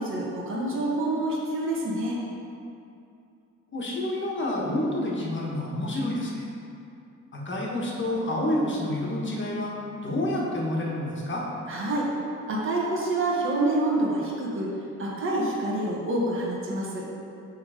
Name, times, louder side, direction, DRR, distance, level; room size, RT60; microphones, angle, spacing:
voice 1, 0.0-2.2 11.7-12.1 12.5-14.7 15.0-17.1, right 2 dB, 45° right, -5 dB, 1.6 m, -27 dB
voice 2, 3.7-6.5 7.3-9.7 10.0-11.4, left 1 dB, 40° left, -3 dB, 1.6 m, -28 dB
7.5 x 3.8 x 5.0 m, 2.6 s
cardioid pair, 90°, 30 cm